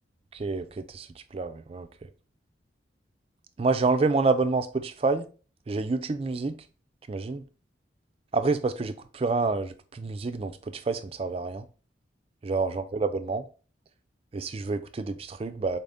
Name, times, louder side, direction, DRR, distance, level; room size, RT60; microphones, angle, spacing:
voice 1, 0.3-1.1 1.3-1.9 3.6-5.3 5.7-6.6 7.1-7.4 8.3-11.7 12.4-13.5 14.3-15.8, right 3 dB, 30° right, 0.3 m, -28 dB
4.1 x 2.6 x 3.4 m
head